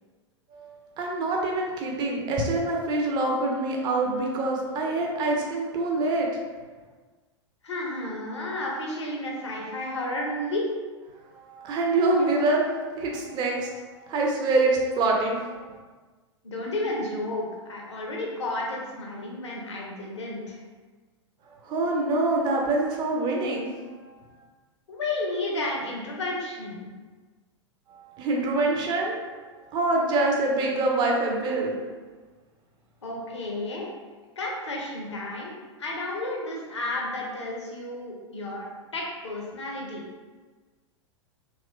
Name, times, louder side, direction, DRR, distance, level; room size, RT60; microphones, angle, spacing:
voice 1, 0.5-6.3 11.5-15.6 21.6-23.7 24.0-24.1 27.9-29.2 29.5-31.7, right 2 dB, 30° right, 0 dB, 0.6 m, -25 dB
voice 2, 7.6-10.7 16.4-20.6 24.9-26.9 33.0-33.9 34.4-35.5 35.8-38.7 38.9-40.0, left 2 dB, 70° left, -2 dB, 0.8 m, -32 dB
3.6 x 2.8 x 2.3 m, 1.4 s
figure-of-eight pair, 95°, 15 cm